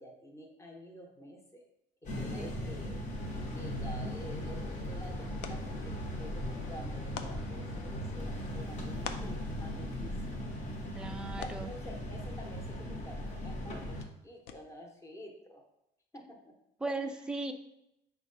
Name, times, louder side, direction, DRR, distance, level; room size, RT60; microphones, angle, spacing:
voice 1, 0.0-1.6 2.0-3.0 3.5-10.1 11.4-15.6 16.1-16.5 17.0-17.3, equal, 15° left, 1 dB, 0.9 m, -49 dB
sound 1, 2.0-14.0, left 1 dB, 45° left, 1.0 m, -38 dB
voice 2, 2.4-2.8 10.9-11.7 16.8-17.5, right 2 dB, 5° right, 6 dB, 0.3 m, -37 dB
sound 2, 4.2-15.0, left 7 dB, 80° left, 0.4 m, -51 dB
4.6 x 2.3 x 3.8 m, 0.81 s
cardioid pair, 110°, 17 cm